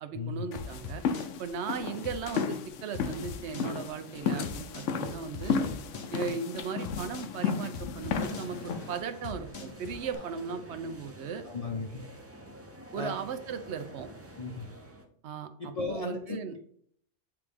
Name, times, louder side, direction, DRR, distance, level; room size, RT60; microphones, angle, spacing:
voice 1, 0.0-1.0 1.4-5.6 6.1-11.4 12.9-14.1 15.2-16.5, right 6 dB, 70° right, 9 dB, 0.9 m, -37 dB
sound 1, 0.5-9.0, left 6 dB, 90° left, 1.0 m, -33 dB
sound 2, 0.6-10.2, left 5 dB, 65° left, 1.0 m, -42 dB
sound 3, 8.2-15.1, right 1 dB, 20° right, 0.5 m, -49 dB
voice 2, 11.5-12.0 12.9-13.1 14.4-14.7 15.6-16.4, left 4 dB, 40° left, -1 dB, 0.7 m, -35 dB
8.2 x 3.4 x 3.4 m, 0.63 s
omnidirectional pair, 1.2 m